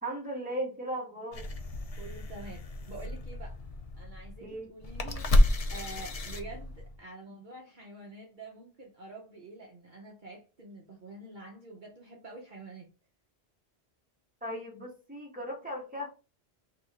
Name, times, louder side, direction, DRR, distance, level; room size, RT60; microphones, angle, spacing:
voice 1, 0.0-1.5 4.4-4.7 7.3-7.4 14.4-16.1, right 1 dB, 10° right, 1.6 m, -37 dB
sound 1, 1.3-7.0, left 1 dB, 45° left, 0.6 m, -30 dB
voice 2, 2.0-3.6 4.0-5.3 5.7-12.9, right 2 dB, 50° right, 1.0 m, -47 dB
3.4 x 2.9 x 4.7 m
omnidirectional pair, 1.1 m